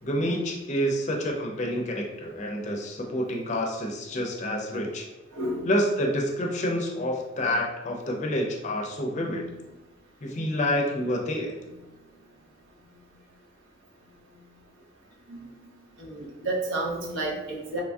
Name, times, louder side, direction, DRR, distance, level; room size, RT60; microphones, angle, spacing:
voice 1, 0.0-5.1 5.7-9.4 10.2-11.6, equal, 40° left, 1 dB, 0.4 m, -28 dB
voice 2, 5.3-5.7 9.3-9.5 15.3-15.5 16.0-17.8, right 2 dB, 85° right, -2 dB, 0.7 m, -31 dB
2.9 x 2.5 x 2.3 m, 1.0 s
head